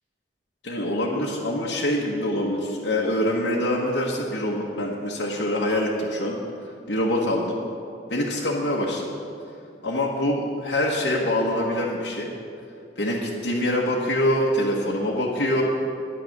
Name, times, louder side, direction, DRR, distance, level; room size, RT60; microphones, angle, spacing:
voice 1, 0.6-6.4 6.9-7.6 8.1-9.1 9.8-12.3 13.0-15.6, left 1 dB, 85° left, -3 dB, 1.4 m, -25 dB
9.9 x 9.1 x 6.6 m, 2.4 s
head